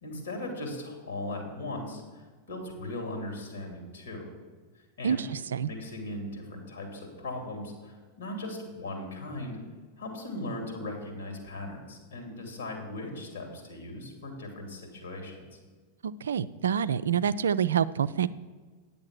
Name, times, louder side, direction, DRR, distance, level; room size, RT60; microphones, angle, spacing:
voice 1, 0.0-4.3 5.0-5.2 5.6-9.6 10.0-15.6, left 1 dB, 70° left, 2 dB, 2.6 m, -38 dB
voice 2, 5.0-5.7 16.0-18.3, right 8 dB, 65° right, 15 dB, 0.3 m, -27 dB
9.5 x 7.1 x 6.1 m, 1.4 s
figure-of-eight pair, 90°, 0 cm